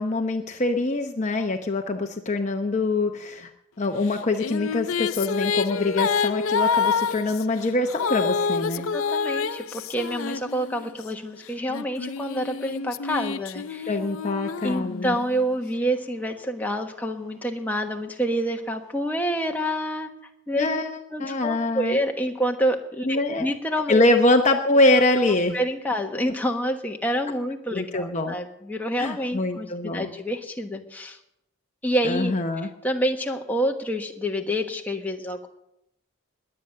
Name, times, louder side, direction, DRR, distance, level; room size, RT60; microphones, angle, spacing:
voice 1, 0.0-3.5 3.8-8.9 13.9-15.2 20.6-20.9 21.2-22.0 23.0-23.5 23.9-25.6 27.7-28.4 29.0-30.1 32.0-32.7, left 2 dB, 35° left, 5 dB, 0.8 m, -24 dB
Female singing, 4.1-11.0 11.7-15.4, left 5 dB, 75° left, 0.6 m, -28 dB
voice 2, 8.9-14.0 14.6-20.1 20.5-20.7 21.1-24.0 25.5-31.2 31.8-32.3 32.8-35.5, equal, 10° left, 2 dB, 1.2 m, -27 dB
21.0 x 8.9 x 6.6 m, 0.85 s
head